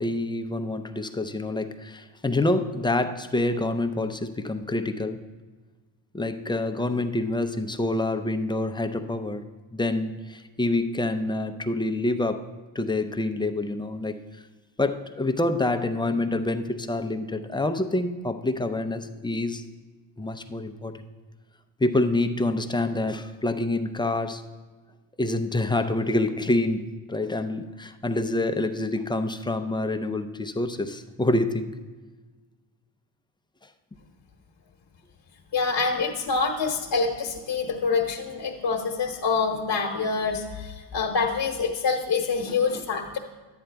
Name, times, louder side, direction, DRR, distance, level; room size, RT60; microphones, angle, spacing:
voice 1, 0.0-5.2 6.1-9.4 9.7-12.4 12.7-14.2 14.8-19.6 20.2-21.1 21.8-24.4 25.2-31.7 42.5-42.9, left 2 dB, 10° left, 7 dB, 0.4 m, -27 dB
voice 2, 35.5-43.2, left 4 dB, 50° left, 0 dB, 1.0 m, -26 dB
10.5 x 8.9 x 3.4 m, 1.3 s
cardioid pair, 100°, 45 cm